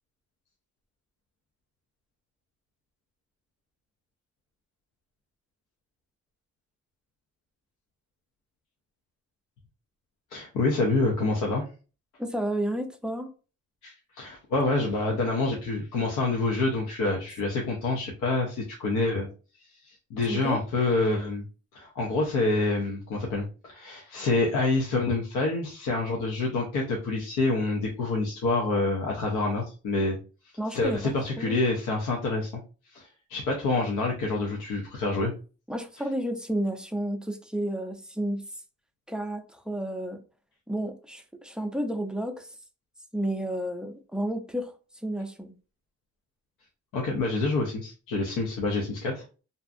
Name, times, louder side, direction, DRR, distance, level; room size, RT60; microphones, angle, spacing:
voice 1, 10.3-11.7 13.8-19.3 19.7-21.4 21.7-30.2 30.7-32.5 32.9-35.3 46.9-49.2, left 3 dB, 80° left, -1 dB, 0.7 m, -27 dB
voice 2, 12.2-13.3 20.3-20.6 30.6-31.6 35.7-38.4 39.1-40.2 40.7-42.5 43.1-44.7 45.0-45.5, right 1 dB, 5° right, 5 dB, 0.4 m, -31 dB
2.6 x 2.4 x 2.5 m, 0.35 s
cardioid pair, 90°, 30 cm